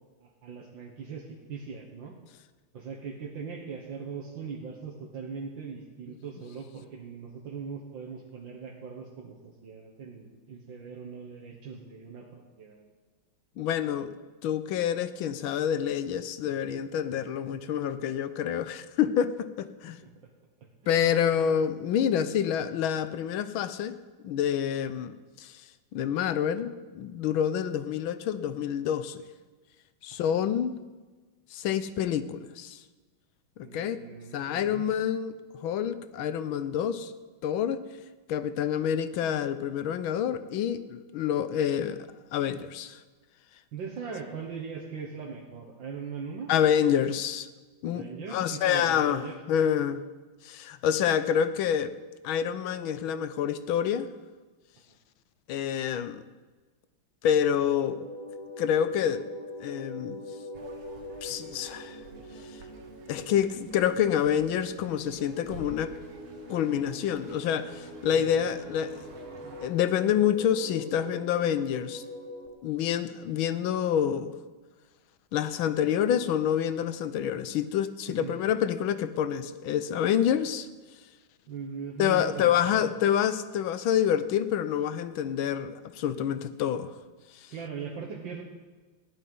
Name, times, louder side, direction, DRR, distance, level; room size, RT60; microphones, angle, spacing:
voice 1, 0.2-2.1 2.7-12.8 20.0-20.1 20.8-21.1 30.1-30.2 33.6-34.9 43.7-46.5 47.9-49.4 54.9-55.0 68.1-68.3 78.1-78.3 81.5-82.9 87.5-88.4, right 5 dB, 65° right, -2 dB, 2.0 m, -40 dB
voice 2, 13.6-14.1 14.4-20.0 20.9-24.0 24.2-25.6 25.9-29.2 30.0-30.8 31.5-32.8 33.6-34.0 34.3-35.3 35.6-37.1 37.4-37.8 38.3-42.0 42.3-43.0 46.5-47.5 47.8-50.0 50.4-52.0 52.2-54.1 55.5-56.2 57.2-58.1 58.6-59.2 59.6-60.2 61.2-62.0 63.1-66.0 66.5-69.1 69.6-72.0 72.6-74.3 75.3-80.7 82.0-86.9, left 9 dB, 75° left, 12 dB, 1.5 m, -27 dB
sound 1, 57.5-72.5, left 1 dB, 10° left, 2.6 m, -43 dB
sound 2, 60.5-69.7, right 4 dB, 85° right, 2.4 m, -51 dB
15.5 x 11.5 x 5.4 m, 1.3 s
omnidirectional pair, 2.3 m